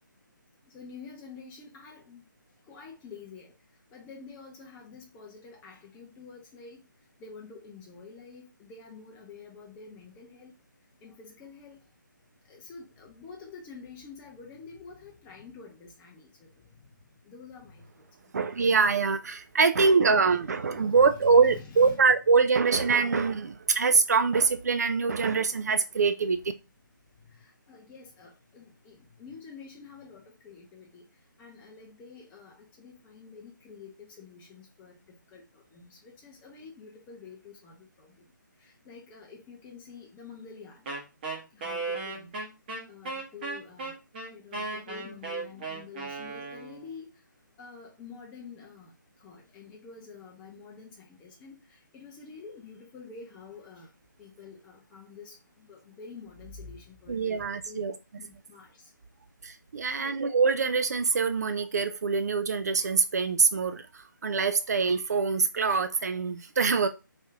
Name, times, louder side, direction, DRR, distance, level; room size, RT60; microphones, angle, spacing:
voice 1, 0.7-2.2 2.7-3.5 3.9-6.8 7.2-10.6 11.0-11.8 12.5-18.1 20.5-22.2 27.2-31.0 31.4-38.3 38.6-40.9 41.5-42.4 42.9-44.0 44.3-47.2 47.6-53.9 54.2-57.8 58.2-58.9 60.0-60.2, left 5 dB, 15° left, 0.8 m, -48 dB
voice 2, 18.3-26.4 57.1-57.9 59.4-66.9, right 5 dB, 50° right, 0.5 m, -24 dB
Wind instrument woodwind instrument, 40.9-46.9, right 3 dB, 30° right, 1.0 m, -36 dB
3.4 x 2.7 x 3.5 m
figure-of-eight pair, 150°, 11 cm